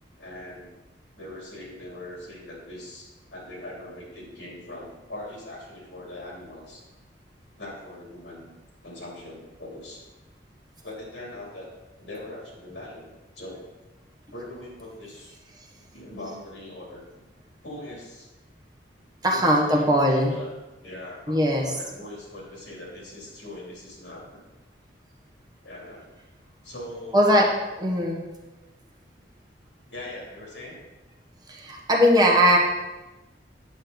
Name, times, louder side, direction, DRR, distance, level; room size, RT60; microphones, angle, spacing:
voice 1, 0.2-0.7 1.2-6.8 7.6-8.5 8.8-10.0 10.8-11.7 12.0-13.7 14.3-15.4 15.8-17.3 17.6-18.3 19.3-20.5 20.8-24.4 25.6-26.0 26.6-27.3 29.9-30.8, left 1 dB, 75° left, -3 dB, 3.0 m, -41 dB
voice 2, 19.2-20.4 21.3-21.8 27.1-27.5 27.8-28.2 31.5-32.6, equal, 25° right, -1 dB, 1.3 m, -20 dB
8.7 x 7.6 x 3.9 m, 1.1 s
head